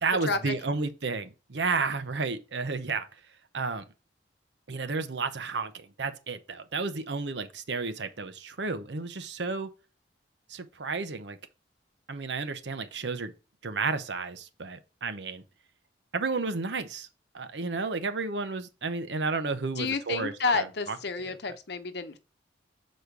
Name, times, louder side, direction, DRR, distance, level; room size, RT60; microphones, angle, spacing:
voice 1, 0.0-3.1 3.5-3.8 4.7-9.7 10.5-11.4 12.1-13.3 13.6-15.4 16.1-17.1 17.3-21.6, right 4 dB, 75° right, 0.8 m, -32 dB
voice 2, 19.8-22.2, left 4 dB, 65° left, 0.9 m, -30 dB
6.7 x 4.3 x 4.7 m
head